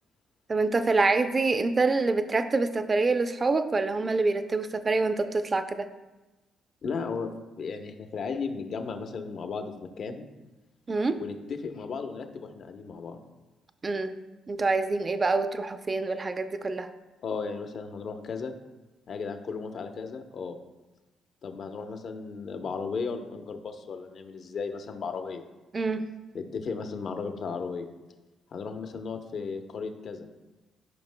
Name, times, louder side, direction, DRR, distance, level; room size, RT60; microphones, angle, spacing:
voice 1, 0.5-5.9 10.9-11.2 13.8-14.1 14.5-16.9 25.7-26.0, right 3 dB, 35° right, 9 dB, 0.6 m, -26 dB
voice 2, 6.8-7.3 7.6-10.3 11.2-13.2 17.2-18.5 19.1-20.6 21.4-25.4 26.3-27.9 28.5-30.3, left 5 dB, 60° left, 6 dB, 0.8 m, -35 dB
12.5 x 5.4 x 2.2 m, 1.1 s
supercardioid pair, 70°, 0 cm